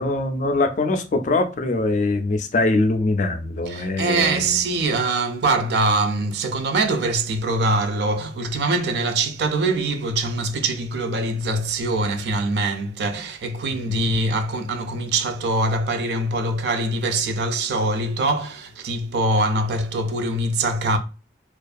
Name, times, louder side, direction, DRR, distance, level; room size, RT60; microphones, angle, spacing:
voice 1, 0.0-4.6 13.9-14.2, left 2 dB, 45° left, 0.3 m, -23 dB
voice 2, 3.7-21.0, right 2 dB, 65° right, 0.4 m, -23 dB
2.5 x 2.3 x 2.3 m
head